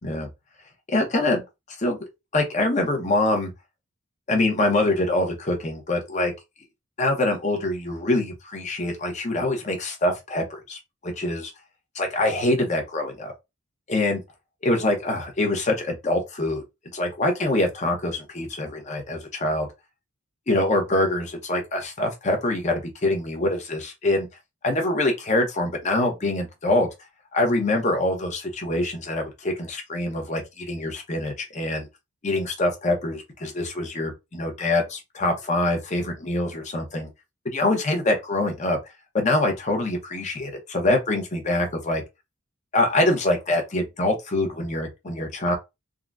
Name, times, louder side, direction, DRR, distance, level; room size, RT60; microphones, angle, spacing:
voice 1, 0.9-1.4 1.8-3.5 4.3-6.3 7.0-10.8 11.0-11.5 11.9-13.3 13.9-14.2 14.6-16.6 16.9-19.7 20.5-24.3 24.6-26.9 27.3-31.9 32.2-37.1 37.4-38.8 39.1-42.0 42.7-45.6, left 2 dB, 35° left, 0.7 m, -24 dB
3.7 x 2.1 x 2.3 m
head